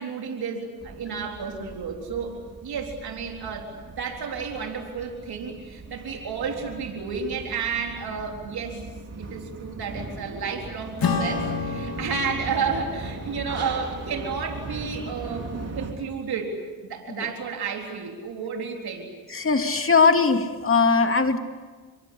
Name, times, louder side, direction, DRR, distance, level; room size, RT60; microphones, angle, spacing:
voice 1, 0.0-8.8 9.2-15.5 15.8-19.1, right 5 dB, 85° right, 2 dB, 4.0 m, -31 dB
sound 1, 0.8-15.9, right 3 dB, 45° right, 4.0 m, -39 dB
Acoustic guitar / Strum, 11.0-15.7, left 5 dB, 75° left, 3.8 m, -32 dB
voice 2, 19.3-21.4, left 4 dB, 35° left, 6 dB, 2.6 m, -20 dB
27.0 x 23.0 x 8.5 m, 1.5 s
cardioid pair, 70°, 36 cm